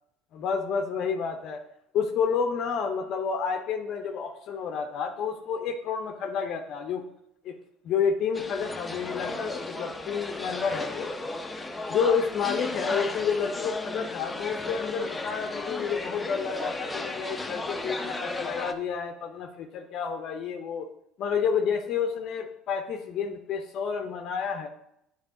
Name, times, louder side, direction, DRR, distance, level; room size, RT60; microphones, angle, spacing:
voice 1, 0.3-1.6 1.9-7.0 7.4-7.6 7.8-11.1 11.9-20.9 21.2-24.7, left 6 dB, 60° left, 4 dB, 0.6 m, -29 dB
sound 1, 8.3-18.7, left 2 dB, 15° left, 0.6 m, -35 dB
8.9 x 3.5 x 3.7 m, 0.78 s
hypercardioid pair, 80°, 0 cm